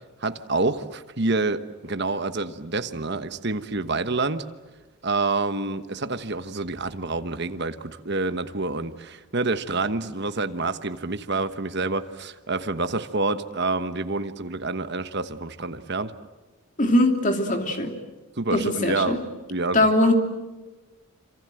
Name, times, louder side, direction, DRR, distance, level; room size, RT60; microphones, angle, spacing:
voice 1, 0.2-4.5 5.0-16.1 18.4-19.2 19.5-19.9, right 3 dB, 50° right, 10 dB, 1.2 m, -27 dB
voice 2, 16.8-17.9 18.5-19.2 19.7-20.1, left 1 dB, 35° left, 4 dB, 2.9 m, -21 dB
27.5 x 26.5 x 7.8 m, 1.2 s
head